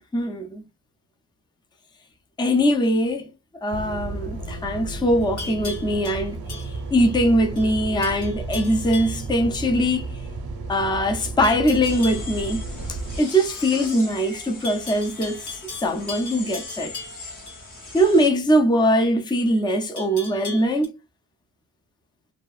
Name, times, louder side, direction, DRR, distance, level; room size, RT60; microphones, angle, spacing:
voice 1, 0.1-0.6 2.4-3.3 3.6-6.4 6.7-10.2 10.7-12.6 12.9-16.9 17.9-20.9, equal, 10° left, 0.5 m, -22 dB
sound 1, 3.7-13.2, right 3 dB, 70° right, 0.6 m, -33 dB
Livestock farm animals working animals, 4.9-7.2 7.6-7.8 8.0-9.3 11.4-12.3 14.6-17.6 20.0-20.9, left 3 dB, 75° left, 1.4 m, -38 dB
sound 2, 11.8-18.3, left 3 dB, 50° left, 1.2 m, -39 dB
2.7 x 2.4 x 2.3 m
wide cardioid pair, 75°, 39 cm